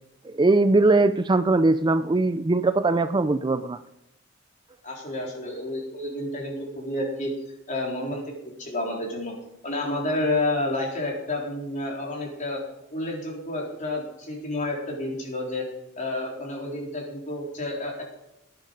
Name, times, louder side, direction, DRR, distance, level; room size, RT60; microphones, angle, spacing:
voice 1, 0.3-3.8, right 2 dB, 20° right, 11 dB, 0.4 m, -21 dB
voice 2, 4.8-7.3 7.7-9.3 9.6-12.6 12.9-15.7 16.0-18.1, left 2 dB, 40° left, -1 dB, 3.9 m, -30 dB
17.5 x 10.5 x 5.3 m, 0.87 s
head